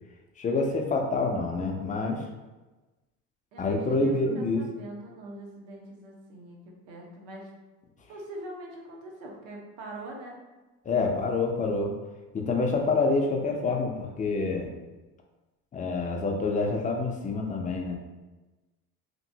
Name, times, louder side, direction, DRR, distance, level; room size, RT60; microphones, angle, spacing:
voice 1, 0.4-2.3 3.6-4.6 10.8-11.9 12.3-14.7 15.7-18.0, left 3 dB, 20° left, 1 dB, 0.3 m, -27 dB
voice 2, 3.5-7.5 8.1-10.4, right 1 dB, 75° right, -1 dB, 0.9 m, -43 dB
2.9 x 2.6 x 2.6 m, 1.1 s
supercardioid pair, 100°, 44 cm